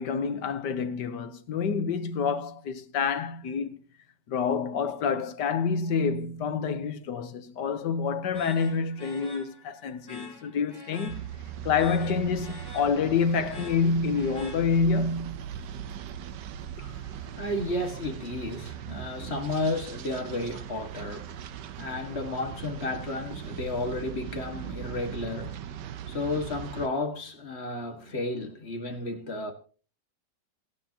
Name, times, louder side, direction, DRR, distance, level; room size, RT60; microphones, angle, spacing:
voice 1, 0.0-3.8 4.3-11.3 11.6-15.4, left 5 dB, 70° left, 1.6 m, -27 dB
sound 1, 8.3-15.1, left 3 dB, 10° left, 3.7 m, -47 dB
sound 2, 11.1-26.9, right 10 dB, 70° right, 1.4 m, -40 dB
voice 2, 16.8-25.7 26.1-29.5, left 2 dB, 35° left, 2.0 m, -33 dB
27.5 x 9.2 x 2.9 m
omnidirectional pair, 2.0 m